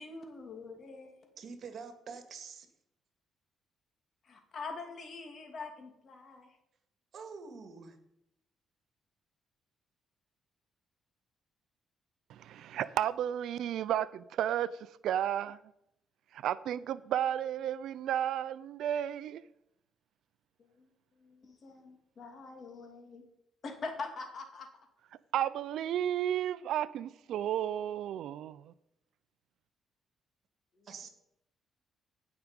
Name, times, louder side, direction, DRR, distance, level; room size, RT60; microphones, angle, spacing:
voice 1, 0.0-1.2 4.2-6.6 20.6-20.9 21.2-23.2 23.6-24.7 30.8-30.9, left 4 dB, 50° left, 2.7 m, -44 dB
voice 2, 1.4-2.7 7.1-8.0 30.8-31.1, right 5 dB, 55° right, 2.0 m, -46 dB
voice 3, 12.3-15.6 16.3-19.4 25.3-28.7, right 10 dB, 80° right, 0.4 m, -33 dB
16.5 x 6.0 x 5.3 m
cardioid pair, 90°, 0 cm